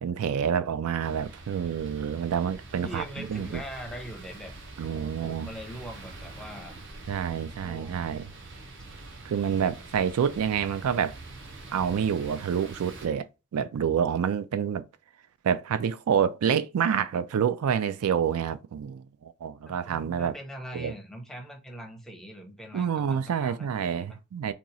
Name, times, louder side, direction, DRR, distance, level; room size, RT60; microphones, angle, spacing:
voice 1, 0.0-3.0 3.3-3.6 4.8-5.5 7.1-8.3 9.2-11.2 11.7-13.3 13.5-14.8 15.4-20.3 20.7-20.9 22.7-24.5, right 8 dB, 85° right, 0.3 m, -28 dB
sound 1, 1.0-13.1, right 2 dB, 55° right, 0.7 m, -45 dB
voice 2, 2.8-4.5 4.8-6.7 7.6-8.0 19.6-24.2, equal, ahead, 0.5 m, -42 dB
2.9 x 2.3 x 3.8 m
head